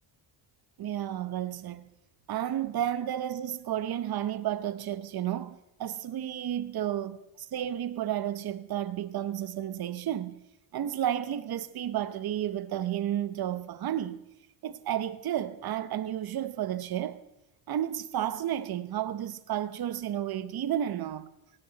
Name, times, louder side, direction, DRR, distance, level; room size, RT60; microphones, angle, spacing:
voice 1, 0.8-1.8 2.3-10.4 10.7-14.2 14.6-17.2 17.7-21.3, right 11 dB, 50° right, 1.0 m, -32 dB
17.5 x 16.5 x 4.1 m
cardioid pair, 110°, 49 cm